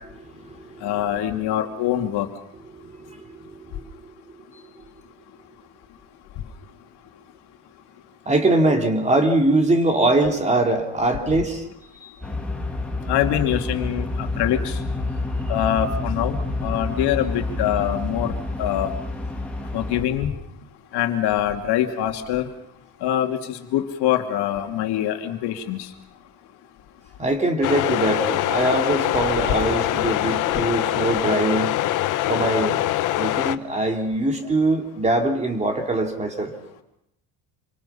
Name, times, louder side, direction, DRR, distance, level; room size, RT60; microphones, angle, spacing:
voice 1, 0.1-1.1 2.6-3.9 8.3-11.7 11.9-12.1 27.2-31.7 32.3-32.8 33.2-36.5, right 2 dB, 15° right, 3 dB, 2.9 m, -22 dB
voice 2, 0.8-2.3 13.1-14.8 15.5-18.3 18.6-18.9 19.7-20.3 20.9-22.5 23.0-25.9 27.8-27.9, left 11 dB, 65° left, 4 dB, 2.6 m, -24 dB
sound 1, 12.2-20.0, left 2 dB, 5° left, 2.8 m, -28 dB
sound 2, 27.6-33.6, left 14 dB, 45° left, 0.9 m, -23 dB
28.0 x 25.5 x 5.7 m, 0.78 s
cardioid pair, 170°, 42 cm